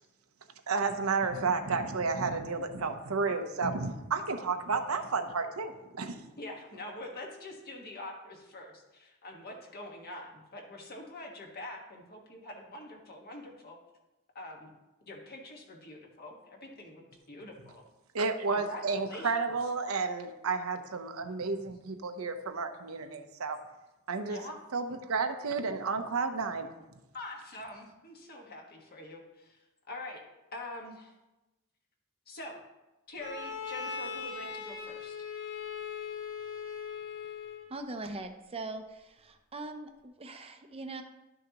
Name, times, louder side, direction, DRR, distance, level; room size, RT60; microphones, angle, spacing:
voice 1, 0.7-6.2 18.1-23.6 24.1-24.4 24.7-26.7, right 4 dB, 80° right, 6 dB, 0.8 m, -31 dB
voice 2, 6.4-13.8 14.3-14.7 15.1-17.8 18.5-19.3 24.3-24.6 27.1-29.6 29.9-30.2 30.5-31.1 32.3-32.6 33.1-35.3, left 1 dB, 50° left, 0 dB, 1.5 m, -45 dB
Bowed string instrument, 33.2-37.8, left 6 dB, 65° left, 1.0 m, -39 dB
voice 3, 37.7-41.0, right 2 dB, 30° right, 6 dB, 0.6 m, -41 dB
12.0 x 6.4 x 3.0 m, 1.0 s
head